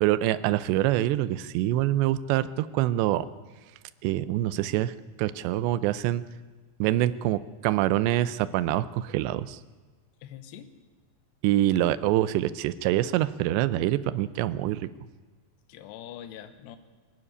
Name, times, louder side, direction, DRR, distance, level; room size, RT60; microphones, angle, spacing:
voice 1, 0.0-3.3 4.0-4.9 5.2-6.2 6.8-9.6 11.4-14.9, right 14 dB, 80° right, 15 dB, 2.9 m, -25 dB
voice 2, 10.2-10.7 15.7-16.8, left 10 dB, 75° left, 9 dB, 3.1 m, -43 dB
21.5 x 12.5 x 9.8 m, 1.3 s
omnidirectional pair, 5.2 m